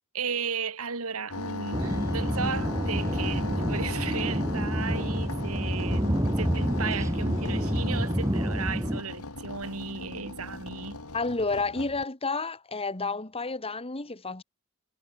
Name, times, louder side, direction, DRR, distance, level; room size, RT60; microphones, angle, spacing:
voice 1, 0.1-11.0, right 5 dB, 70° right, 2.4 m, -35 dB
sound 1, 1.3-12.0, left 2 dB, 75° left, 3.7 m, -38 dB
sound 2, 1.7-9.0, equal, 15° right, 2.5 m, -28 dB
voice 2, 11.1-14.4, left 3 dB, 25° left, 2.0 m, -30 dB
head